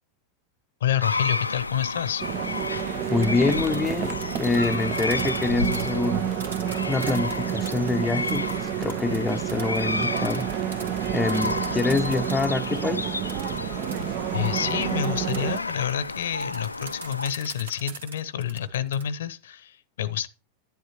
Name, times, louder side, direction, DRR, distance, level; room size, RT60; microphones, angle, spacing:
voice 1, 0.8-2.2 14.3-20.3, left 10 dB, 60° left, 0.8 m, -28 dB
sound 1, 1.0-17.3, left 3 dB, 80° left, 0.4 m, -32 dB
sound 2, 2.2-15.6, right 13 dB, 40° right, 0.4 m, -30 dB
voice 2, 3.1-6.3 6.9-10.5 11.1-13.1, left 3 dB, 10° left, 0.6 m, -26 dB
sound 3, 3.2-12.7 13.3-19.0, right 4 dB, 70° right, 1.6 m, -43 dB
10.5 x 10.5 x 2.9 m
figure-of-eight pair, 90°, 0 cm